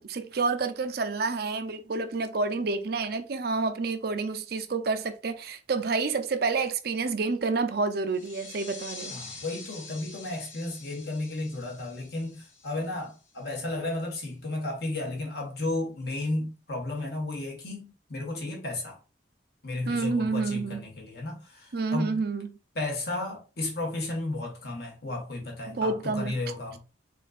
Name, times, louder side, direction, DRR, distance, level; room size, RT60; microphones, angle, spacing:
voice 1, 0.0-9.2 19.9-20.8 21.7-22.5 25.7-26.3, right 4 dB, 55° right, 0.5 m, -29 dB
sound 1, 8.1-13.4, left 3 dB, 80° left, 2.1 m, -46 dB
voice 2, 9.1-19.0 19.6-22.1 22.7-26.8, left 2 dB, 55° left, 1.5 m, -33 dB
4.3 x 3.9 x 2.4 m
head